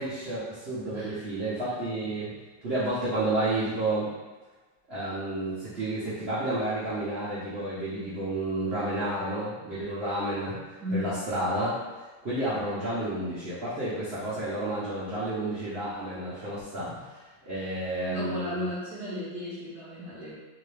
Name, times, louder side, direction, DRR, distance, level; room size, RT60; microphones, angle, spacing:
voice 1, 0.0-2.3 2.6-4.1 4.9-11.8 12.2-17.0 17.4-18.6, right 1 dB, 50° right, -11 dB, 0.7 m, -31 dB
voice 2, 10.8-11.2 16.9-17.1 18.0-20.3, left 1 dB, ahead, -11 dB, 0.9 m, -34 dB
3.1 x 2.9 x 3.3 m, 1.2 s
omnidirectional pair, 2.2 m